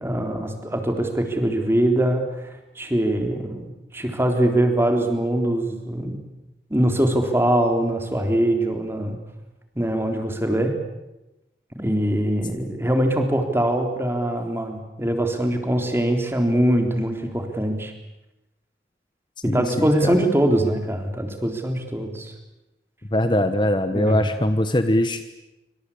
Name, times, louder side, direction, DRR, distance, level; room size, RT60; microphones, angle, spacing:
voice 1, 0.0-3.6 3.9-6.2 6.7-9.2 9.8-10.8 11.7-17.9 19.4-22.3 23.9-24.3, right 1 dB, 15° right, 4 dB, 3.7 m, -22 dB
voice 2, 19.5-20.3 23.1-25.2, left 1 dB, 25° left, 9 dB, 1.2 m, -22 dB
27.0 x 25.5 x 8.6 m, 0.99 s
head